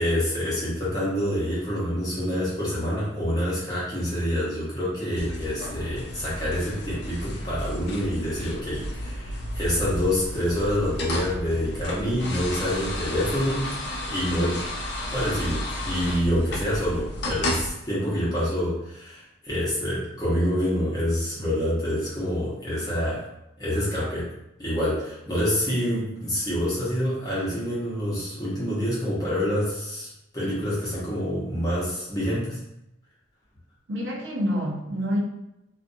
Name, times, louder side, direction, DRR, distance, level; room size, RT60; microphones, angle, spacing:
voice 1, 0.0-14.6 15.1-23.2 23.6-24.3 24.6-30.1 30.3-32.6, equal, 20° left, -8 dB, 0.8 m, -27 dB
sound 1, 5.2-17.7, left 1 dB, 55° left, 0.4 m, -33 dB
voice 2, 33.9-35.2, equal, 65° right, -3 dB, 0.6 m, -27 dB
2.5 x 2.3 x 2.6 m, 0.85 s
head